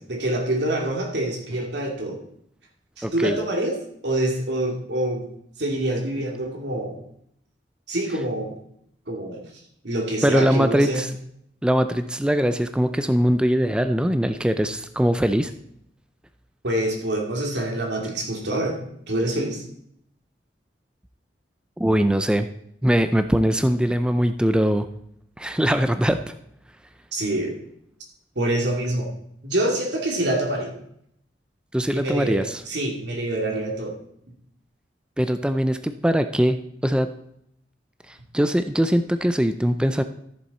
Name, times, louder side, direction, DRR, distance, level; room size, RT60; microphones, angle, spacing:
voice 1, 0.0-2.2 3.0-3.8 4.0-5.3 5.6-7.0 7.9-8.6 9.1-9.4 9.8-11.0 16.6-18.8 19.1-19.6 27.1-27.5 28.4-29.1 29.4-30.7 31.9-33.9, right 1 dB, 80° right, 0 dB, 2.5 m, -26 dB
voice 2, 3.0-3.4 10.2-11.1 11.6-15.5 21.8-22.5 22.8-24.9 25.4-26.2 31.7-32.6 35.2-36.6 36.8-37.1 38.1-40.0, equal, 5° right, 9 dB, 0.4 m, -21 dB
13.5 x 6.9 x 4.2 m, 0.72 s
head